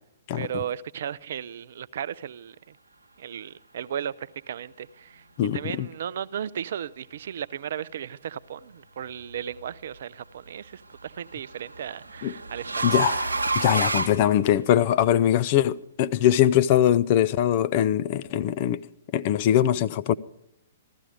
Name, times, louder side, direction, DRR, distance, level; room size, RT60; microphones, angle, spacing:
voice 1, 0.3-2.8 3.2-5.2 5.5-13.0, right 9 dB, 55° right, 0.4 m, -35 dB
voice 2, 5.4-5.9 12.2-12.3 12.8-13.2 13.6-18.8 19.1-20.1, left 11 dB, 40° left, 0.5 m, -22 dB
sound 1, 9.0-9.5 10.9-14.9, right 3 dB, 80° right, 1.1 m, -29 dB
15.0 x 12.5 x 4.9 m
figure-of-eight pair, 115°, 0 cm